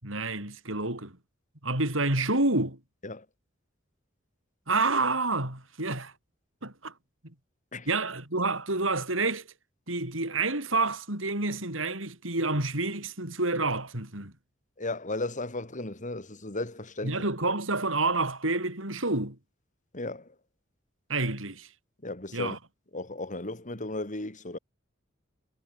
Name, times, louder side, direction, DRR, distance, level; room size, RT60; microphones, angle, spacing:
voice 1, 0.0-1.2 1.6-2.8 4.7-6.1 6.6-6.9 7.9-9.5 9.9-14.3 17.0-19.4 21.1-21.7 22.3-22.6, right 3 dB, 75° right, 7.8 m, -28 dB
voice 2, 14.8-17.2 19.9-20.3 22.0-22.6 22.9-24.6, left 2 dB, 40° left, 3.3 m, -35 dB
head